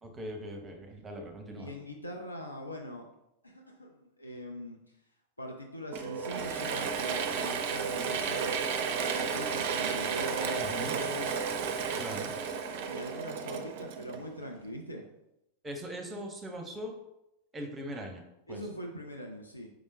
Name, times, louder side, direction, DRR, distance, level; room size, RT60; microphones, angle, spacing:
voice 1, 0.0-1.7 10.6-11.0 12.0-12.3 15.6-16.9 17.5-18.2 18.5-18.6, equal, 20° right, 4 dB, 0.7 m, -40 dB
voice 2, 1.6-3.0 3.4-4.8 5.4-8.7 9.1-11.3 12.9-15.0 18.5-19.7, equal, 85° left, 2 dB, 0.5 m, -41 dB
Mechanisms / Drill, 5.9-14.5, right 6 dB, 45° right, 0.4 m, -33 dB
4.8 x 3.5 x 2.7 m, 0.87 s
figure-of-eight pair, 90°, 0 cm